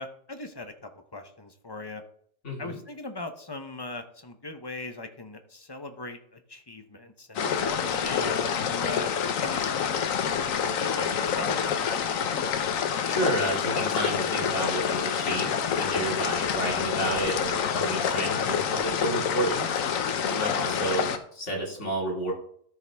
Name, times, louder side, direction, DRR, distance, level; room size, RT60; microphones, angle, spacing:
voice 1, 0.0-2.0 2.6-10.0 10.6-11.8, left 2 dB, 25° left, 7 dB, 0.7 m, -39 dB
voice 2, 2.4-2.8 13.0-19.7 20.3-22.3, right 1 dB, 65° left, -3 dB, 2.8 m, -31 dB
sound 1, 7.4-21.2, left 7 dB, 85° left, 1.2 m, -27 dB
13.0 x 5.3 x 3.4 m, 0.64 s
omnidirectional pair, 1.4 m